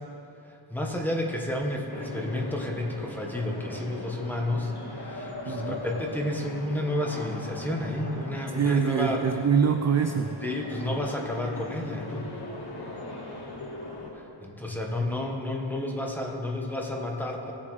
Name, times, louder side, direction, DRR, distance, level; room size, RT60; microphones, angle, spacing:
voice 1, 0.5-9.2 10.4-12.3 14.1-17.5, left 1 dB, 5° left, -1 dB, 1.3 m, -31 dB
sound 1, 1.9-14.1, left 2 dB, 50° left, 1.7 m, -39 dB
voice 2, 5.5-5.8 8.5-10.3, right 6 dB, 35° right, 7 dB, 0.4 m, -24 dB
18.0 x 7.3 x 3.2 m, 2.8 s
wide cardioid pair, 85°, 49 cm